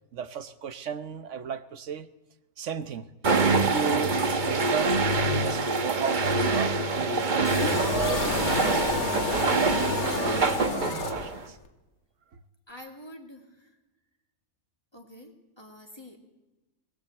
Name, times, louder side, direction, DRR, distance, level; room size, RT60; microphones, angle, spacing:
voice 1, 0.1-2.1 2.6-3.1 3.5-4.2 4.5-8.3 8.6-11.6 12.3-12.4, right 7 dB, 55° right, 12 dB, 1.2 m, -35 dB
sound 1, 3.2-11.5, right 3 dB, 35° right, 1.1 m, -25 dB
sound 2, 7.4-11.7, left 5 dB, 70° left, 2.0 m, -30 dB
voice 2, 12.7-13.8 14.9-16.2, left 1 dB, 15° left, 1 dB, 2.6 m, -47 dB
21.5 x 20.0 x 8.0 m, 1.1 s
omnidirectional pair, 1.6 m